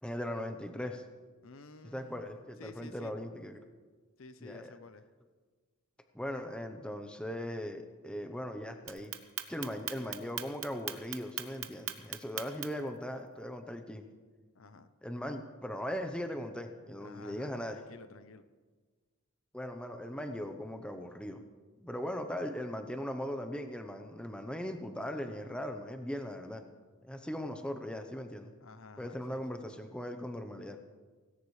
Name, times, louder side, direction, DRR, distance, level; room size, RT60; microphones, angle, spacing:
voice 1, 0.0-1.0 1.8-3.6 4.4-4.7 6.1-9.1 9.5-14.1 15.0-17.8 19.5-21.4 21.8-26.6 27.0-28.5 29.0-30.8, equal, 5° left, 6 dB, 0.8 m, -39 dB
voice 2, 1.4-2.2 2.6-3.1 4.2-5.0 14.5-14.9 17.0-18.4 28.6-29.4, left 3 dB, 65° left, 11 dB, 0.7 m, -52 dB
Clock, 8.9-12.9, right 12 dB, 60° right, 0.9 m, -38 dB
17.5 x 17.0 x 3.3 m, 1.4 s
head